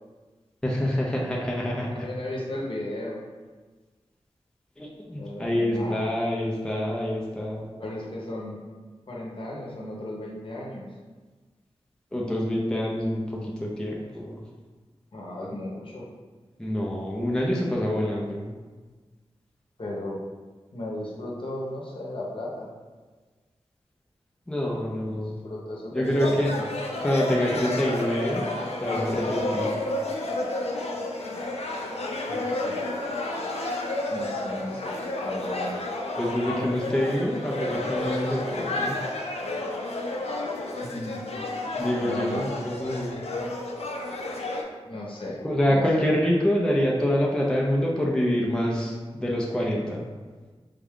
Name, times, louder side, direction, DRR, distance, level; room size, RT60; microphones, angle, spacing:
voice 1, 0.6-2.1 4.8-7.7 12.1-14.4 16.6-18.5 24.5-25.4 25.9-26.5 27.0-28.5 28.8-29.7 36.2-39.0 41.8-43.2 45.4-50.0, equal, 5° left, -3 dB, 0.5 m, -26 dB
voice 2, 1.9-3.2 5.2-6.2 7.8-8.6 9.1-10.9 15.1-16.1 19.8-20.2 20.7-22.7 25.1-26.7 31.3-31.5 32.3-33.1 34.1-35.7 40.8-41.2 42.0-42.4 44.8-45.4 45.7-46.0, left 1 dB, 55° left, -4 dB, 0.8 m, -35 dB
sound 1, 26.0-44.6, left 2 dB, 70° left, 0.5 m, -31 dB
3.6 x 2.3 x 3.5 m, 1.4 s
wide cardioid pair, 85°, 11 cm